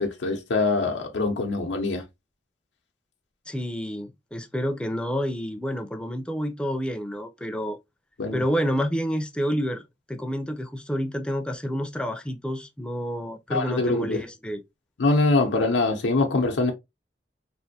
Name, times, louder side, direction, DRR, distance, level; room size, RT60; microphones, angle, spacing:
voice 1, 0.0-2.0 8.2-8.4 13.5-14.2 15.0-16.7, left 3 dB, 85° left, 0.6 m, -23 dB
voice 2, 3.5-7.8 8.3-9.8 10.1-14.6, equal, 5° left, 0.4 m, -29 dB
3.4 x 2.5 x 2.7 m
head